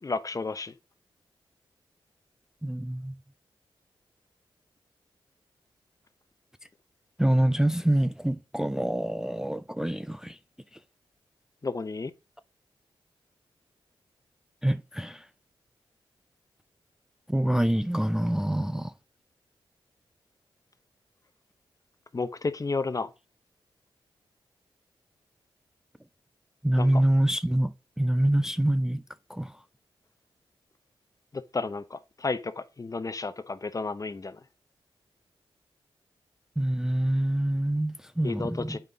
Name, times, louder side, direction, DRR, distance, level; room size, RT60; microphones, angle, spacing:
voice 1, 0.0-0.7 11.6-12.1 22.1-23.1 26.8-27.0 31.3-34.4 38.2-38.8, left 3 dB, 35° left, 0.8 m, -32 dB
voice 2, 2.6-3.2 7.2-10.4 14.6-15.3 17.3-18.9 26.6-29.0 29.3-29.6 36.6-38.8, right 1 dB, 5° right, 0.4 m, -26 dB
7.5 x 5.6 x 3.7 m
cardioid pair, 50°, 10 cm